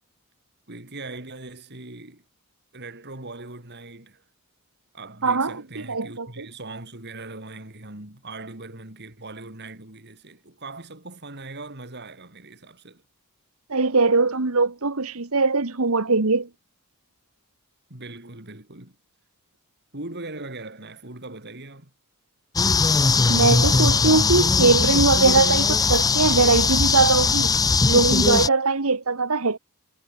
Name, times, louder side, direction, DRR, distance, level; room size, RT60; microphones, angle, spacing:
voice 1, 0.7-2.2 2.7-4.2 4.9-13.0 17.9-19.0 19.9-21.9, right 2 dB, 50° right, 4.4 m, -40 dB
voice 2, 5.2-6.4 13.7-16.5 23.3-27.5 27.9-29.6, right 3 dB, 70° right, 1.5 m, -21 dB
sound 1, 22.6-28.5, left 4 dB, 15° left, 0.5 m, -20 dB
head